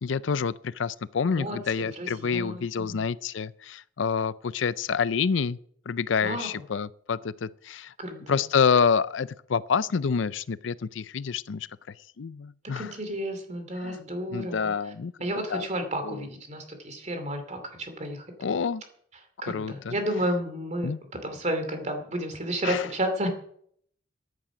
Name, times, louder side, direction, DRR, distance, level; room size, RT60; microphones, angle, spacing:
voice 1, 0.0-5.6 5.9-7.9 8.3-12.9 13.8-14.0 14.3-15.1 15.5-15.7 16.0-16.2 18.4-18.8 19.5-19.9 20.8-21.0 22.6-22.8, left 6 dB, 75° left, 0.5 m, -27 dB
voice 2, 1.3-3.1 6.2-6.6 8.0-8.4 12.8-14.7 15.2-18.5 19.4-20.9 21.2-23.3, right 1 dB, 35° right, 2.6 m, -32 dB
14.0 x 10.0 x 6.0 m
head